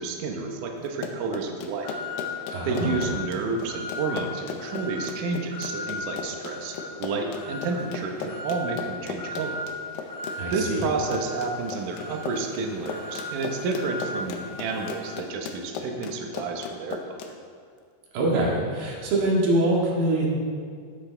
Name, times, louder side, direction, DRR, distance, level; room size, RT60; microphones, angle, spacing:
voice 1, 0.0-1.9 2.6-9.6 10.5-17.2, right 4 dB, 85° right, 2 dB, 1.8 m, -30 dB
Run, 0.9-17.3, left 6 dB, 75° left, 2.6 m, -36 dB
sound 1, 1.8-2.3 2.8-3.2 3.7-4.2 4.6-5.0 5.5-5.9 6.4-6.9 7.3-7.8 8.3-8.7 9.2-9.6 10.1-10.5 11.0-15.2, left 2 dB, 20° right, 1.5 m, -37 dB
voice 2, 2.5-3.0 10.4-10.8 18.1-20.3, right 1 dB, 65° right, -4 dB, 3.8 m, -24 dB
13.5 x 10.0 x 3.4 m, 2.1 s
omnidirectional pair, 5.2 m